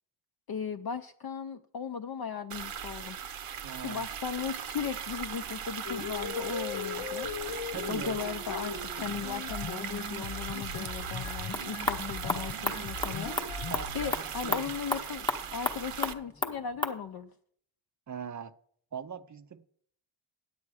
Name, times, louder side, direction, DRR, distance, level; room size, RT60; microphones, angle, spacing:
voice 1, 0.5-3.2 3.7-7.3 7.9-13.4 13.9-17.3, left 7 dB, 50° left, 7 dB, 0.5 m, -37 dB
sound 1, 2.5-16.1, right 8 dB, 85° right, 0.9 m, -39 dB
voice 2, 3.6-4.1 7.7-8.2 13.7-14.7 18.1-18.5 18.9-19.7, right 7 dB, 40° right, 12 dB, 0.4 m, -41 dB
sound 2, 5.8-14.1, left 6 dB, 90° left, 1.1 m, -39 dB
sound 3, 11.3-17.0, left 1 dB, 10° left, 0.7 m, -35 dB
9.7 x 8.3 x 4.8 m, 0.63 s
wide cardioid pair, 145°, 49 cm